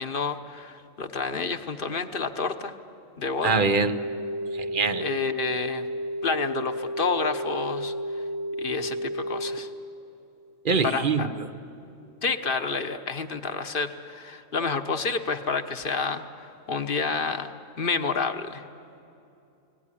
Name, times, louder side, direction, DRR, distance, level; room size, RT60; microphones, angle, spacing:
voice 1, 0.0-2.7 3.2-3.6 5.0-5.9 6.2-7.9 8.6-9.7 10.8-11.3 12.2-17.5 17.8-18.6, left 4 dB, 45° left, 9 dB, 1.2 m, -29 dB
voice 2, 3.4-4.0 4.5-5.1 10.6-11.5, right 4 dB, 45° right, 11 dB, 1.0 m, -24 dB
sound 1, 3.5-9.6, equal, 80° left, 1.6 m, -32 dB
29.5 x 19.0 x 10.0 m, 2.8 s
omnidirectional pair, 1.4 m